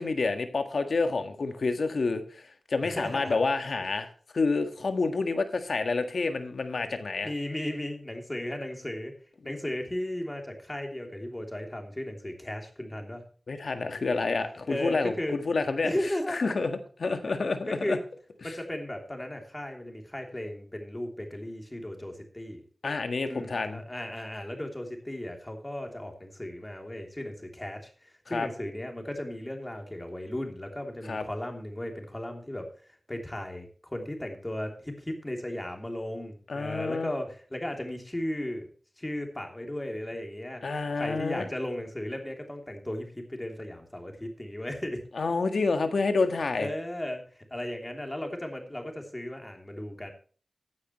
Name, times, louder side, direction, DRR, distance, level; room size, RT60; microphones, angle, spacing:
voice 1, 0.0-4.1 4.3-7.3 9.4-9.5 13.5-15.9 16.3-18.0 18.4-18.6 22.8-23.8 28.3-28.5 31.1-31.2 36.5-37.1 40.6-41.4 45.1-46.7, left 3 dB, 75° left, 7 dB, 1.6 m, -28 dB
voice 2, 2.8-3.4 7.2-9.1 9.4-13.2 14.7-15.3 15.8-16.5 17.8-18.0 18.4-22.6 23.3-27.9 28.3-32.7 33.1-38.7 39.0-40.6 41.0-45.1 46.6-50.1, left 1 dB, 15° left, 3 dB, 3.1 m, -35 dB
15.0 x 9.6 x 3.1 m, 0.42 s
wide cardioid pair, 85°, 0 cm